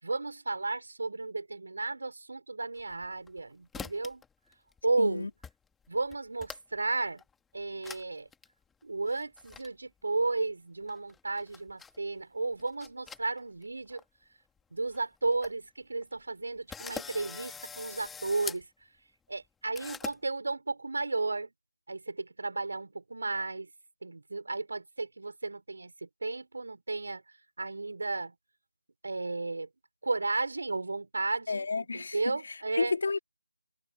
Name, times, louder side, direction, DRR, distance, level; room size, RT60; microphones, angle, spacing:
voice 1, 0.0-4.2 4.8-5.3 5.9-7.2 7.5-8.3 8.8-14.0 14.7-18.7 19.3-21.5 21.9-23.7 24.0-27.2 27.6-28.3 29.0-29.7 30.0-32.9, right 3 dB, 60° right, 5.5 m, -33 dB
sound 1, 2.8-3.4 3.7-4.3 4.5-5.0 5.4-5.5 5.8-6.8 7.2-7.3 7.8-8.0 8.3-8.5 9.1-9.7 10.9-12.0 12.5-13.6 13.9-14.0 14.6-14.7 14.9-15.0 15.3-15.5 16.0-16.1 16.7-18.6 19.8-20.2, left 6 dB, 5° left, 2.0 m, -43 dB
voice 2, 5.0-5.3 31.5-33.2, left 4 dB, 45° left, 2.4 m, -32 dB
figure-of-eight pair, 175°, 0 cm